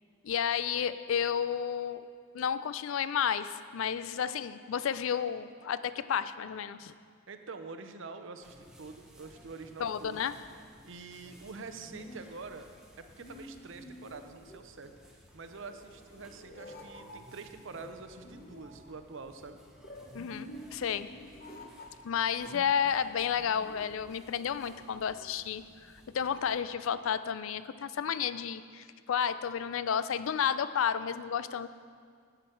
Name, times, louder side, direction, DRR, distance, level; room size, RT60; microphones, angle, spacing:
voice 1, 0.2-2.0 2.3-6.9 9.8-10.3 20.1-21.1 22.0-25.6 26.1-31.7, left 8 dB, 70° left, 13 dB, 0.4 m, -31 dB
voice 2, 7.3-10.3 10.8-12.7 13.2-19.6, right 4 dB, 60° right, 8 dB, 0.6 m, -46 dB
sound 1, 8.4-26.6, equal, 5° right, 1.0 m, -58 dB
sound 2, 11.7-24.1, left 1 dB, 40° left, 1.0 m, -49 dB
9.7 x 9.0 x 4.5 m, 2.1 s
head